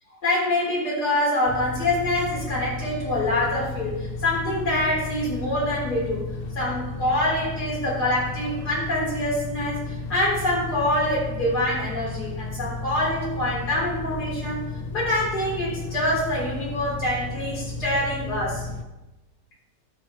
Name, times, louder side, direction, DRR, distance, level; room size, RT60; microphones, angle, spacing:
voice 1, 0.2-6.2 6.5-18.7, left 1 dB, 65° left, -5 dB, 4.8 m, -25 dB
sound 1, 1.5-18.8, left 3 dB, 40° left, 0.9 m, -33 dB
20.0 x 6.9 x 3.2 m, 1.0 s
omnidirectional pair, 1.9 m